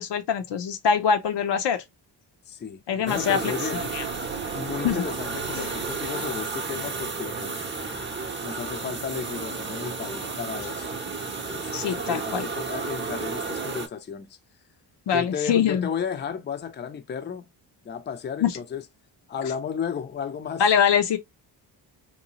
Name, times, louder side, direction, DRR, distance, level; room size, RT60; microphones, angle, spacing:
voice 1, 0.0-1.8 2.9-3.5 3.9-4.0 4.8-5.0 11.7-12.5 15.1-15.9 18.4-18.6 20.6-21.2, left 7 dB, 65° left, 0.7 m, -23 dB
voice 2, 2.5-3.8 4.5-8.0 8.4-14.3 15.1-17.5 17.8-18.8 19.3-20.6, left 7 dB, 25° left, 0.5 m, -34 dB
sound 1, 3.1-13.9, right 4 dB, 25° right, 0.8 m, -32 dB
sound 2, 3.7-6.9, right 10 dB, 60° right, 0.6 m, -42 dB
2.7 x 2.3 x 2.8 m
cardioid pair, 65°, 45 cm